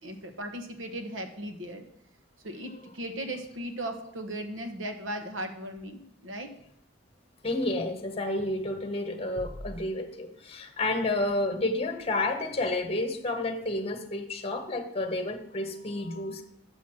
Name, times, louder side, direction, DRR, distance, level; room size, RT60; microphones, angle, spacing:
voice 1, 0.0-1.9 2.4-6.5, right 1 dB, 85° right, 5 dB, 1.2 m, -37 dB
voice 2, 7.4-16.4, left 2 dB, 30° left, 5 dB, 1.0 m, -30 dB
6.9 x 6.2 x 5.9 m, 0.72 s
head